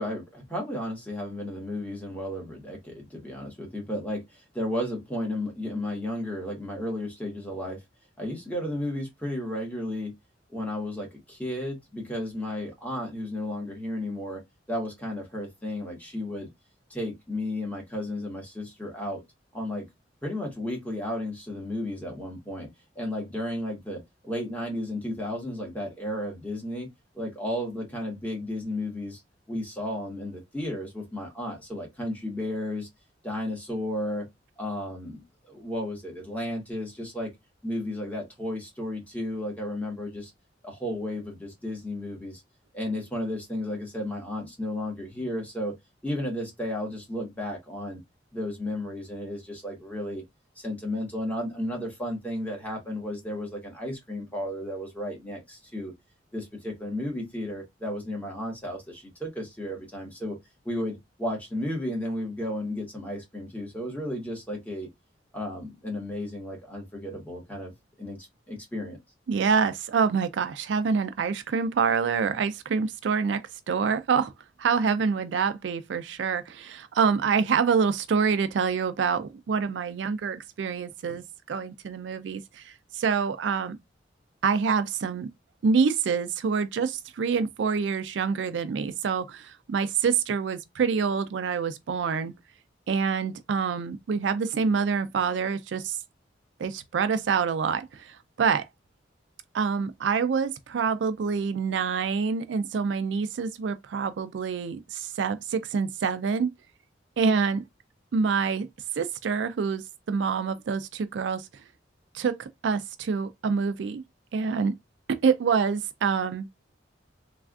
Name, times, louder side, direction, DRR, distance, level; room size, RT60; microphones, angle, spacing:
voice 1, 0.0-7.8 8.2-10.1 10.5-14.4 14.7-16.5 16.9-19.2 19.5-19.9 20.2-22.7 22.9-26.9 27.1-29.2 29.5-32.9 33.2-34.3 34.6-35.2 35.5-37.3 37.6-40.3 40.6-42.4 42.7-45.7 46.0-48.0 48.3-50.2 50.6-55.9 56.3-60.4 60.6-64.9 65.3-68.2 68.5-69.0, left 1 dB, 10° left, 1.3 m, -33 dB
voice 2, 69.3-74.3 74.6-83.8 84.4-85.3 85.6-92.3 92.9-96.0 96.6-98.7 99.5-106.5 107.2-107.6 108.1-108.7 109.0-111.5 112.1-114.0 114.3-114.7 115.1-116.5, right 5 dB, 75° right, 0.4 m, -26 dB
3.3 x 2.4 x 2.3 m
head